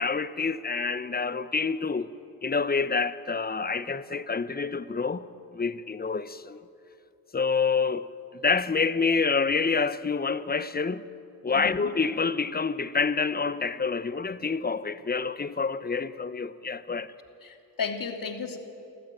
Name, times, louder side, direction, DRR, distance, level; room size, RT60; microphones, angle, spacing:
voice 1, 0.0-2.1 2.4-5.2 5.5-6.6 7.3-8.1 8.3-11.0 11.4-17.1, left 4 dB, 20° left, 1.1 m, -27 dB
voice 2, 11.5-11.9 17.4-18.6, left 5 dB, 45° left, 2.9 m, -34 dB
26.5 x 14.5 x 9.2 m
hypercardioid pair, 50°, 46 cm